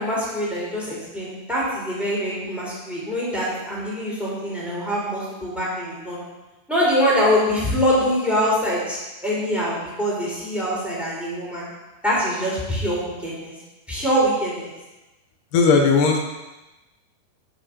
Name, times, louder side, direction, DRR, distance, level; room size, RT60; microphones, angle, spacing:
voice 1, 0.0-6.2 6.7-11.7 12.0-13.5 13.9-14.7, equal, ahead, -6 dB, 2.5 m, -24 dB
voice 2, 15.5-16.2, left 4 dB, 80° left, 2 dB, 2.9 m, -16 dB
10.0 x 5.5 x 6.0 m, 1.1 s
omnidirectional pair, 4.8 m